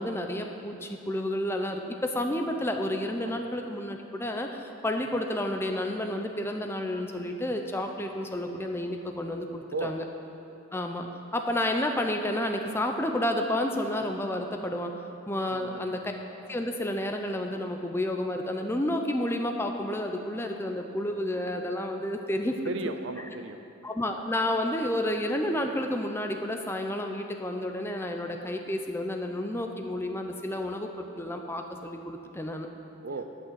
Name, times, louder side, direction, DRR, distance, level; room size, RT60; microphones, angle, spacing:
voice 1, 0.0-10.0 10.7-11.1 11.3-14.9 15.3-16.1 16.5-22.6 23.2-23.3 23.8-32.7, left 1 dB, 10° left, 4 dB, 0.5 m, -30 dB
voice 2, 15.5-16.0 22.7-23.6 33.0-33.2, right 3 dB, 60° right, 8 dB, 0.6 m, -35 dB
10.5 x 6.2 x 7.4 m, 2.8 s
head